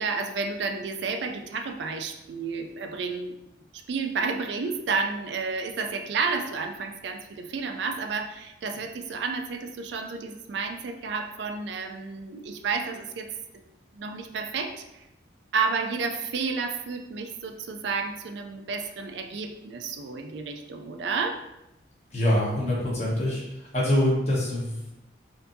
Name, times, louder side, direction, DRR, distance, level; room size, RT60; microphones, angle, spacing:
voice 1, 0.0-3.4 3.7-13.3 13.9-15.1 15.5-21.4, right 4 dB, 65° right, 5 dB, 0.4 m, -31 dB
voice 2, 22.1-23.4 23.7-24.9, left 1 dB, 35° left, -6 dB, 1.1 m, -24 dB
4.4 x 2.6 x 2.6 m, 0.90 s
head